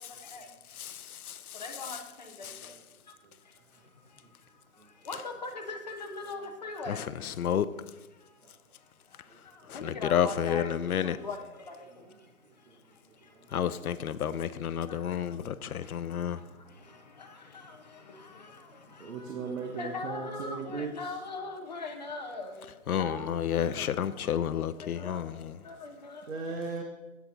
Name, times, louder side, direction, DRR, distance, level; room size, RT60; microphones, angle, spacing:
voice 1, 1.6-2.5 5.1-7.0 9.7-11.4 11.7-11.8 17.2-17.3 17.5-17.6 18.2-18.5 19.1-19.2 19.8-22.6 23.0-23.3 23.8-23.9 25.0-25.3 25.6-26.2, left 3 dB, 30° left, 0.8 m, -39 dB
voice 2, 9.7-11.2 13.5-16.4 22.9-25.5, left 9 dB, 85° left, 0.6 m, -30 dB
voice 3, 19.0-21.1 26.3-26.8, right 4 dB, 65° right, 1.2 m, -36 dB
8.4 x 8.0 x 4.0 m
hypercardioid pair, 165°, 43 cm